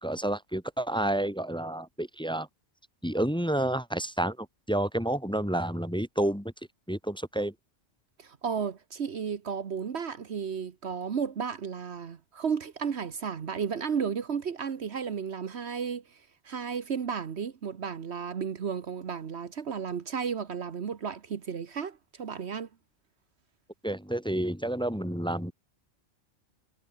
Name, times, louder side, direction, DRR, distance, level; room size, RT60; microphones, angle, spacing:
voice 1, 0.0-2.5 3.0-6.5 6.9-7.5 23.8-25.5, right 1 dB, 5° left, 1.6 m, -30 dB
voice 2, 8.2-22.7, right 6 dB, 60° right, 1.3 m, -33 dB
omnidirectional pair, 1.2 m